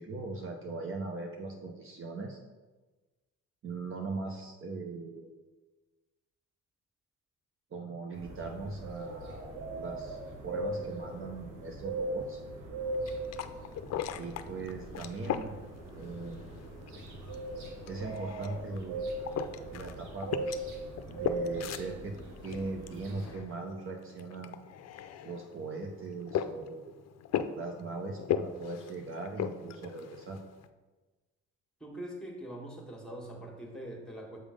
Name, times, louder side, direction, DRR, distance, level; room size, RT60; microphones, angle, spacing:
voice 1, 0.0-2.4 3.6-5.3 7.7-12.4 14.2-15.6 15.9-16.5 17.9-19.1 19.7-20.7 21.1-22.2 22.4-24.6 25.2-27.0 27.5-30.4, right 3 dB, 45° right, 2 dB, 0.8 m, -40 dB
sound 1, 8.1-23.4, right 2 dB, 90° right, 1.3 m, -40 dB
sound 2, 12.8-30.7, left 9 dB, 60° left, 0.5 m, -39 dB
voice 2, 31.8-34.4, right 1 dB, ahead, 0 dB, 1.6 m, -43 dB
7.3 x 3.6 x 5.0 m, 1.2 s
cardioid pair, 90°, 30 cm